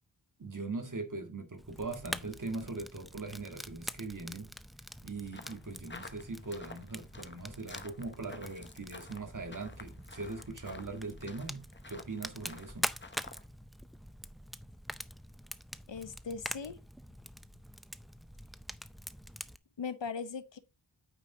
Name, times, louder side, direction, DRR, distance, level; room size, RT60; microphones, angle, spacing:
voice 1, 0.4-4.5 5.0-12.9, right 3 dB, 40° right, 1.8 m, -41 dB
Fire, 1.6-19.6, equal, ahead, 0.4 m, -45 dB
sound 1, 5.3-13.5, left 3 dB, 25° left, 0.9 m, -52 dB
voice 2, 15.9-16.8 19.8-20.6, left 5 dB, 70° left, 0.9 m, -39 dB
8.9 x 5.2 x 3.8 m
wide cardioid pair, 80°, 46 cm